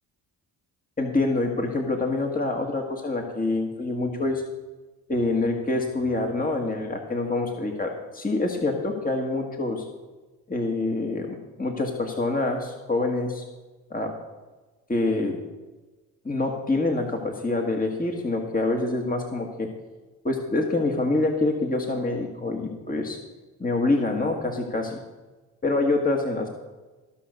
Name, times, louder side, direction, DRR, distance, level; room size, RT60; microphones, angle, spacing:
voice 1, 1.0-4.4 5.1-9.8 10.5-13.4 13.9-14.1 14.9-15.4 16.3-19.7 20.2-23.2 23.6-25.0 25.6-26.5, left 2 dB, 20° left, 2 dB, 1.8 m, -26 dB
14.5 x 5.7 x 6.6 m, 1.2 s
supercardioid pair, 50°, 45 cm